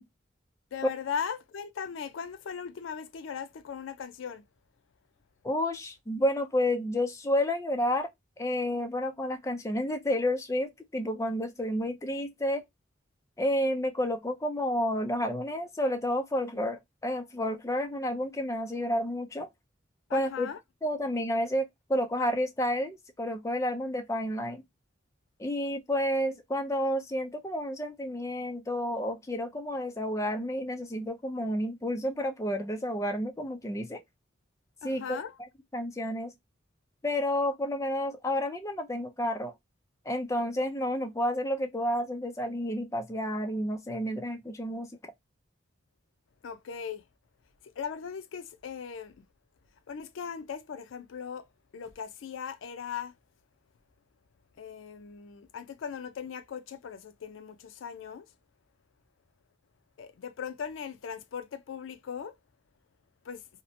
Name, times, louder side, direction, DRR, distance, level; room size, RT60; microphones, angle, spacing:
voice 1, 0.7-4.4 20.1-20.6 34.8-35.4 46.4-47.0 47.8-49.2 49.9-51.5 51.7-53.1 54.6-58.3 60.0-62.4 63.3-63.4, left 7 dB, 80° left, 0.4 m, -38 dB
voice 2, 5.4-8.1 8.4-12.6 13.4-19.5 20.1-20.5 20.8-24.6 25.4-34.0 34.8-35.2 35.7-36.3 37.0-39.5 40.1-44.9, left 1 dB, 15° left, 0.4 m, -30 dB
2.7 x 2.1 x 2.5 m
head